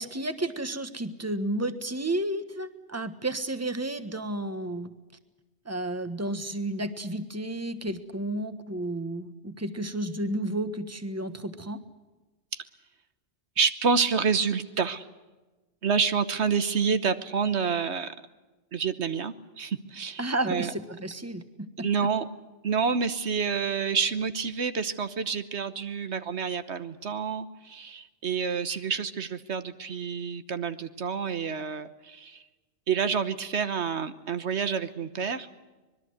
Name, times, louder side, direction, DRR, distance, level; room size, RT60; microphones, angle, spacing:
voice 1, 0.0-4.9 5.6-11.8 20.2-22.1, right 1 dB, 15° right, 10 dB, 1.4 m, -32 dB
voice 2, 13.6-15.1 15.8-18.1 18.7-20.7 21.8-22.3 22.6-32.4 32.9-35.5, right 6 dB, 75° right, 11 dB, 1.4 m, -28 dB
25.5 x 21.5 x 8.0 m, 1.2 s
omnidirectional pair, 1.2 m